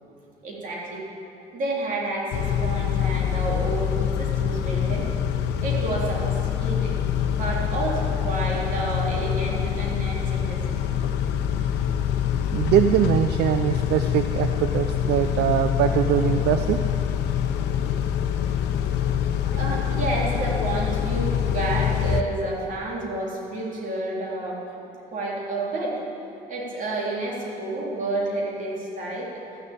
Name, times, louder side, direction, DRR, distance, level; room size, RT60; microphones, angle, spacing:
voice 1, 0.4-1.0 1.5-5.1 5.6-7.0 7.2-10.6 19.4-24.6 25.1-26.0 26.5-29.3, right 2 dB, 50° right, -4 dB, 3.6 m, -30 dB
Car / Idling / Accelerating revving vroom, 2.3-22.2, left 9 dB, 85° left, 0.8 m, -25 dB
voice 2, 11.5-11.9 12.5-16.8, right 10 dB, 75° right, 9 dB, 0.5 m, -22 dB
14.0 x 6.7 x 8.8 m, 2.9 s
cardioid pair, 110°, 17 cm